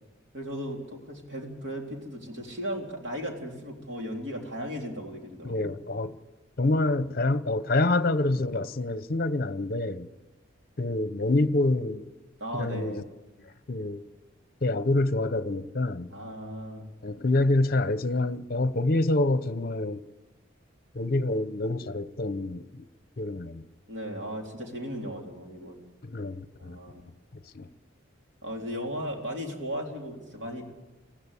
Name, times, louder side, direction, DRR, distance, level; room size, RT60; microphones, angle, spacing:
voice 1, 0.3-5.7 12.4-13.1 16.1-16.9 23.9-25.8 26.6-27.1 28.4-30.7, equal, 60° right, 3.6 m, -36 dB
voice 2, 5.4-6.2 6.6-10.1 10.8-12.0 12.5-13.0 13.7-14.0 14.6-16.1 17.0-20.0 20.9-22.8 23.2-23.7 26.0-26.8 27.5-27.7, left 2 dB, 50° left, 0.8 m, -27 dB
21.0 x 15.0 x 8.3 m
head